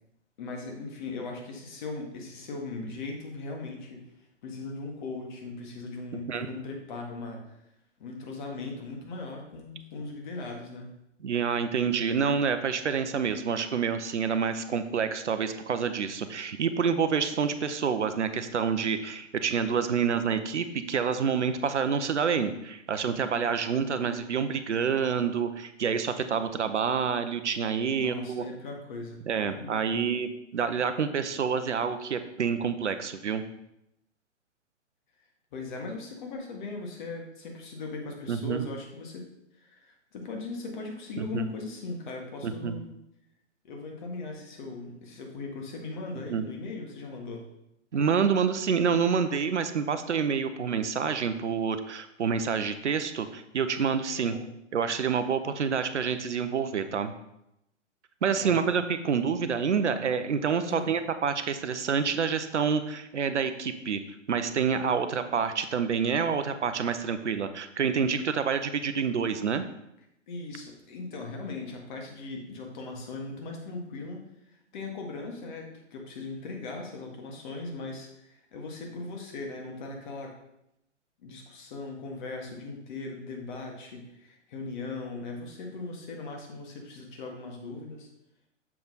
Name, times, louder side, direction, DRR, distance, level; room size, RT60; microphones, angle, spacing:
voice 1, 0.4-4.1 4.4-7.4 8.0-10.9 28.0-29.2 29.5-30.1 35.5-39.3 39.6-42.9 43.6-47.4 54.2-54.5 58.4-58.6 60.7-60.9 70.3-74.2 74.7-80.3 81.2-88.1, left 3 dB, 40° left, 2 dB, 1.5 m, -39 dB
voice 2, 11.2-28.4 29.3-33.4 38.3-38.6 41.2-41.4 42.4-42.7 46.3-46.4 47.9-54.3 54.7-57.1 58.2-64.0 64.3-69.6, right 6 dB, 70° right, 10 dB, 0.7 m, -28 dB
7.2 x 4.9 x 4.0 m, 0.83 s
figure-of-eight pair, 120°, 37 cm